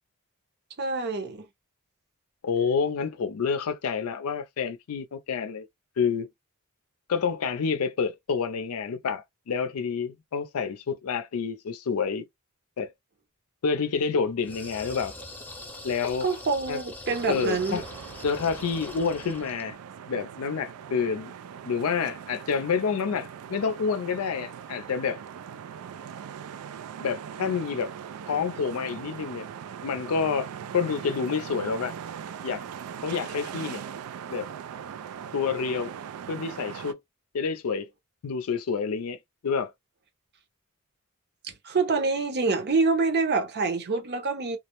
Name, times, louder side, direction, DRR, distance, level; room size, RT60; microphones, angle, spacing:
voice 1, 0.8-1.5 16.2-17.8 41.4-44.6, right 4 dB, 50° right, 0.7 m, -26 dB
voice 2, 2.4-5.7 6.0-6.3 7.1-12.2 12.8-12.9 13.6-15.1 15.8-16.3 16.7-16.8 17.3-17.8 18.2-19.8 20.1-21.3 21.6-25.2 27.0-27.9 28.3-29.5 29.8-31.9 32.4-32.6 33.0-33.8 34.3-34.5 35.3-35.9 36.3-37.0 37.3-37.9 38.2-39.2 39.4-39.7, left 5 dB, 85° left, 0.4 m, -28 dB
sound 1, 14.4-19.7, left 2 dB, 10° left, 0.5 m, -42 dB
sound 2, 17.1-36.9, right 8 dB, 90° right, 0.3 m, -40 dB
2.3 x 2.0 x 2.9 m
head